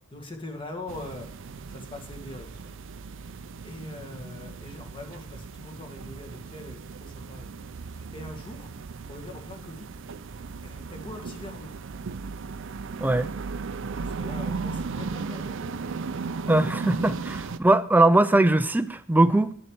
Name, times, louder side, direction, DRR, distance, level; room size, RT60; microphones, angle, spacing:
voice 1, 0.1-1.3 1.7-2.8 3.6-7.6 7.9-8.7 9.1-9.9 10.6-11.7 13.8-15.8, left 1 dB, 25° left, 1.7 m, -42 dB
sound 1, 0.9-17.6, right 4 dB, 65° right, 0.5 m, -36 dB
voice 2, 16.5-19.5, right 2 dB, 10° right, 0.4 m, -20 dB
9.8 x 7.5 x 4.6 m
head